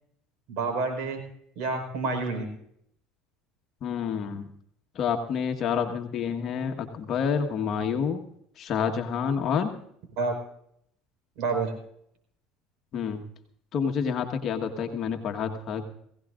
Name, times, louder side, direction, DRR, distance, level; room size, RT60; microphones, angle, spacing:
voice 1, 0.5-1.2 1.5-2.4 10.2-10.3 11.4-11.7, right 3 dB, 70° right, 4 dB, 4.8 m, -28 dB
voice 2, 3.8-4.5 4.9-8.2 8.6-9.7 12.9-13.2 13.7-15.8, left 7 dB, 50° left, 4 dB, 1.5 m, -28 dB
20.5 x 16.5 x 2.5 m, 0.70 s
supercardioid pair, 105°, 0 cm